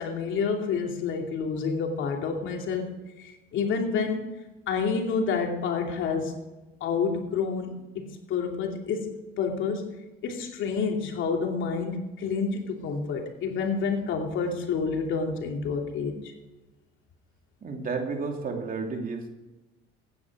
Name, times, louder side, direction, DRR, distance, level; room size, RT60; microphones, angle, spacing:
voice 1, 0.0-4.2 4.7-6.3 6.8-9.1 9.4-9.9 10.2-16.2, left 5 dB, 65° left, 2 dB, 2.7 m, -29 dB
voice 2, 17.6-19.3, right 4 dB, 40° right, 3 dB, 2.8 m, -32 dB
15.0 x 9.9 x 4.8 m, 1.1 s
cardioid pair, 95°, 21 cm